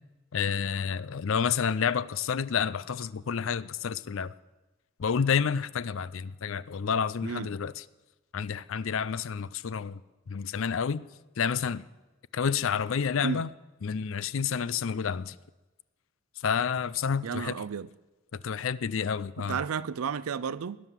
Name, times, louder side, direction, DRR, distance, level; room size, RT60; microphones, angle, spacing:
voice 1, 0.3-4.3 5.0-7.8 8.3-10.0 10.3-11.0 11.4-11.8 12.3-13.5 13.8-15.3 16.4-17.6 18.3-19.6, left 6 dB, 65° left, 0.4 m, -29 dB
voice 2, 17.2-17.9 19.4-20.8, right 6 dB, 80° right, 0.5 m, -32 dB
18.0 x 9.9 x 7.4 m
head